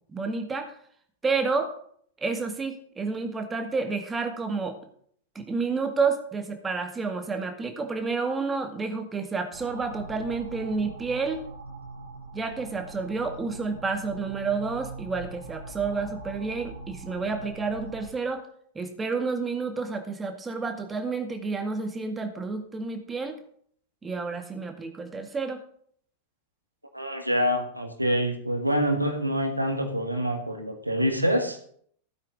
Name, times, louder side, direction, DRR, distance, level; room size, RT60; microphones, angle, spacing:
voice 1, 0.1-0.8 1.2-1.7 2.2-4.8 5.4-11.4 12.3-18.4 18.8-23.4 24.0-25.6, right 4 dB, 15° right, 6 dB, 1.9 m, -30 dB
sound 1, 9.5-18.1, right 3 dB, 70° right, 2.2 m, -42 dB
voice 2, 26.9-31.6, equal, 85° right, 5 dB, 1.7 m, -26 dB
15.5 x 8.9 x 3.8 m, 0.62 s
figure-of-eight pair, 90°, 0 cm